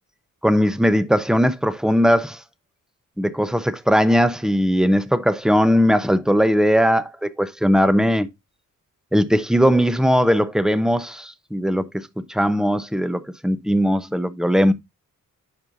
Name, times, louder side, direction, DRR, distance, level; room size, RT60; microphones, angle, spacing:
voice 1, 0.4-2.4 3.2-8.3 9.1-14.7, equal, ahead, 0.8 m, -19 dB
9.7 x 5.6 x 2.6 m
cardioid pair, 80°, 33 cm